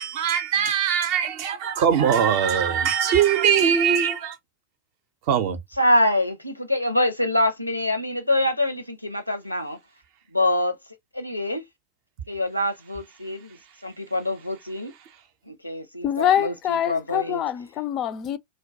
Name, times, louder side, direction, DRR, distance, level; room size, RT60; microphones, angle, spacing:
voice 1, 0.0-4.4 5.3-5.6, right 8 dB, 45° right, 0.5 m, -21 dB
voice 2, 5.8-9.8 10.3-10.7 11.1-11.6 12.3-13.6 13.8-14.9 15.5-17.4, left 1 dB, 90° left, 0.5 m, -25 dB
voice 3, 16.0-18.4, left 10 dB, 35° left, 0.3 m, -24 dB
2.2 x 2.2 x 2.6 m
figure-of-eight pair, 90°, 0 cm